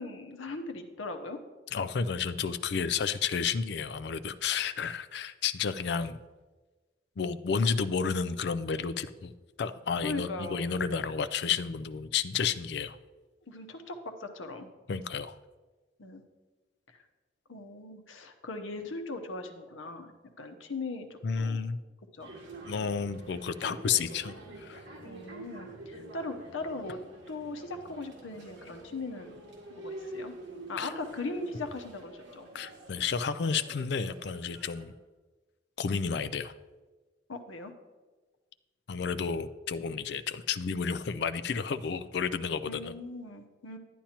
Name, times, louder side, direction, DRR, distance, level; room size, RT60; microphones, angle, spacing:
voice 1, 0.0-1.4 10.0-10.6 13.5-14.7 16.0-16.2 17.5-21.6 22.2-22.3 25.0-27.0 27.3-29.4 29.7-30.3 30.7-32.5 37.3-37.7 42.7-43.8, left 2 dB, 85° left, 6 dB, 0.9 m, -39 dB
voice 2, 1.7-6.2 7.2-9.3 9.6-13.0 14.9-15.4 21.2-21.8 22.7-24.8 30.8-30.9 32.5-34.9 35.8-36.5 38.9-42.9, left 6 dB, 60° left, 12 dB, 0.4 m, -31 dB
sound 1, 22.2-34.8, right 1 dB, 70° right, 1.9 m, -47 dB
10.0 x 10.0 x 2.9 m, 1.3 s
head